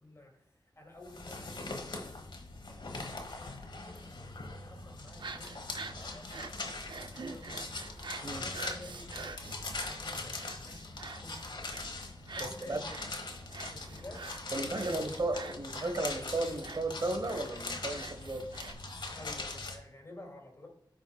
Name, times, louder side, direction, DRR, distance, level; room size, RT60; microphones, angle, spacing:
voice 1, 0.0-0.5 0.8-2.2 2.7-4.1 4.6-6.3 6.6-7.8 8.3-9.6 9.9-11.5 12.3-12.9 13.7-14.3 14.6-15.1 19.1-20.7, left 1 dB, 35° left, 1 dB, 2.4 m, -52 dB
sound 1, 1.0-19.8, left 3 dB, 80° left, 1.2 m, -42 dB
sound 2, 5.1-18.7, right 4 dB, 75° right, 0.5 m, -47 dB
voice 2, 12.4-12.8 14.5-18.5, right 2 dB, 55° right, 6 dB, 1.3 m, -34 dB
14.0 x 4.9 x 2.3 m, 0.72 s
wide cardioid pair, 60°, 8 cm